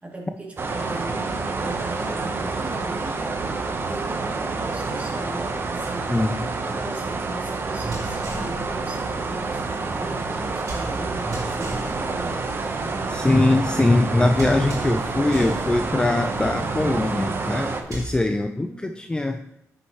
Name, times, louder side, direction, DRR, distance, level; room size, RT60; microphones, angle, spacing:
voice 1, 0.0-6.1 6.7-12.5 18.3-19.0, right 2 dB, 25° right, -3 dB, 2.7 m, -38 dB
sound 1, 0.6-17.8, right 3 dB, 40° right, 1.0 m, -28 dB
voice 2, 6.1-6.5 13.1-19.4, left 2 dB, 15° left, 7 dB, 0.5 m, -22 dB
sound 2, 7.8-18.2, right 1 dB, 70° right, 2.8 m, -37 dB
10.0 x 6.5 x 3.1 m, 0.79 s
cardioid pair, 85°, 6 cm